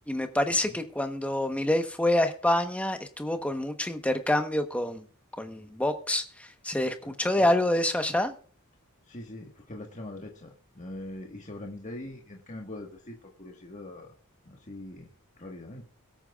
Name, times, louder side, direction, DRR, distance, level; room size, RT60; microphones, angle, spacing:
voice 1, 0.1-5.1 5.4-8.3, left 1 dB, 5° left, 1.1 m, -27 dB
voice 2, 7.0-7.6 9.1-14.1 14.4-15.1 15.4-15.9, left 1 dB, 35° left, 1.5 m, -42 dB
22.5 x 8.9 x 2.4 m
head